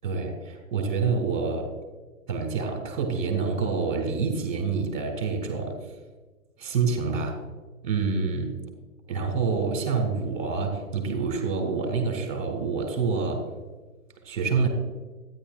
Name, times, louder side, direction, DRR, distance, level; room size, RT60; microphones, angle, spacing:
voice 1, 0.0-1.7 2.3-5.7 6.6-7.4 7.8-8.6 9.1-13.5 14.2-14.7, right 5 dB, 35° right, 5 dB, 1.8 m, -27 dB
12.5 x 9.6 x 2.5 m, 1.2 s
figure-of-eight pair, 130°, 44 cm